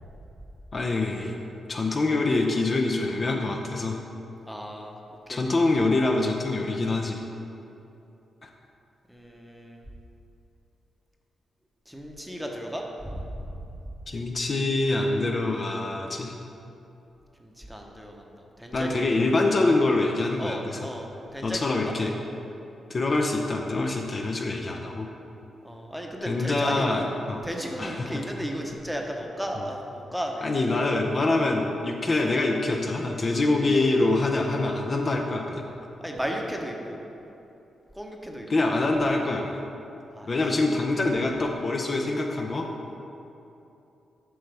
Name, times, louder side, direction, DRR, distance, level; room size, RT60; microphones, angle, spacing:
voice 1, 0.7-1.4 1.7-4.0 5.3-7.2 8.4-8.5 14.1-16.3 18.7-20.9 21.4-22.1 22.9-25.1 26.3-27.4 27.8-28.2 30.4-35.6 38.5-39.6 40.3-42.7, left 2 dB, 45° left, 1 dB, 0.6 m, -25 dB
voice 2, 4.5-5.0 5.3-5.4 9.1-9.8 11.9-13.4 17.4-19.3 20.4-21.9 25.6-26.9 27.4-30.5 36.0-37.0 37.9-38.7 40.1-40.3, equal, ahead, 1 dB, 0.9 m, -35 dB
7.8 x 5.6 x 3.4 m, 2.8 s
cardioid pair, 65°, 0 cm